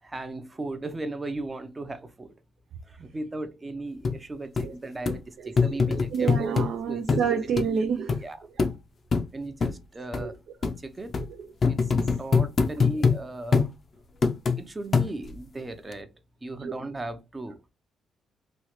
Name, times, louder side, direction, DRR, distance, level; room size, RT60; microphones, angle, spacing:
voice 1, 0.0-2.3 3.0-6.5 6.9-7.2 8.2-8.5 9.3-10.3 10.8-11.1 11.7-11.8 12.2-13.7 14.6-16.1 16.4-17.6, right 2 dB, 20° right, 0.6 m, -36 dB
sound 1, 4.0-4.2 4.6-4.7 5.1-5.2 5.6-6.7 7.1-7.3 7.6-7.7 8.1-8.2 8.6-8.7 9.1-9.3 9.6-9.7 10.1-10.2 10.6-10.8 11.1-11.3 11.6-13.2 13.5-13.7 14.2-14.6 14.9-15.4 15.9-16.0, left 5 dB, 45° left, 0.5 m, -23 dB
voice 2, 5.9-8.2 10.2-10.3 11.9-12.0 16.6-16.7, right 6 dB, 70° right, 0.5 m, -28 dB
3.1 x 2.4 x 3.0 m
cardioid pair, 90°, 0 cm